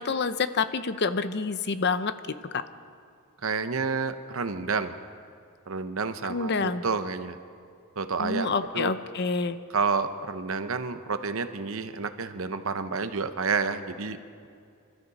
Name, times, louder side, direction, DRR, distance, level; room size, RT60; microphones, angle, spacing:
voice 1, 0.0-2.6 6.3-6.8 8.2-9.6, left 4 dB, 50° left, 12 dB, 0.6 m, -28 dB
voice 2, 3.4-5.0 5.7-7.4 8.0-8.9 9.7-14.2, right 4 dB, 65° right, 9 dB, 0.8 m, -29 dB
26.5 x 13.0 x 4.1 m, 2.4 s
head